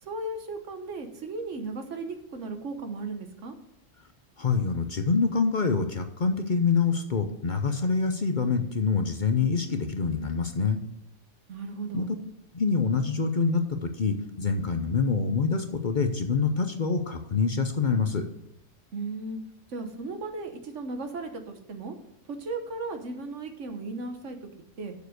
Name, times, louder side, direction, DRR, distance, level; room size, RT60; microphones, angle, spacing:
voice 1, 0.0-3.6 11.5-12.1 18.9-19.4 19.7-22.0 22.2-24.5 24.8-24.9, right 3 dB, 70° right, 6 dB, 1.4 m, -36 dB
voice 2, 4.4-10.8 11.9-12.1 12.5-18.2, left 5 dB, 45° left, 7 dB, 0.8 m, -26 dB
7.0 x 6.6 x 8.0 m, 0.79 s
omnidirectional pair, 1.3 m